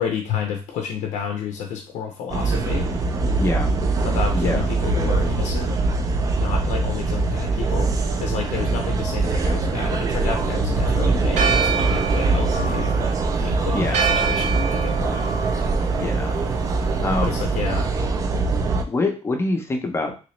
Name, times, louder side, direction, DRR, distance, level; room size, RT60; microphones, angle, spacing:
voice 1, 0.0-2.9 4.0-5.7 6.4-7.9 8.2-13.1 13.4-15.3 17.2-17.9, left 7 dB, 85° left, 3 dB, 0.5 m, -30 dB
sound 1, 2.3-18.8, right 3 dB, 30° right, 0.3 m, -22 dB
voice 2, 3.4-3.7 4.3-4.7 13.7-14.1 16.0-16.3 17.0-17.4 18.9-20.1, left 2 dB, 20° left, 4 dB, 0.5 m, -25 dB
Church bell, 11.3-17.6, right 5 dB, 70° right, 0.6 m, -28 dB
3.0 x 3.0 x 3.0 m, 0.34 s
cardioid pair, 170°, 12 cm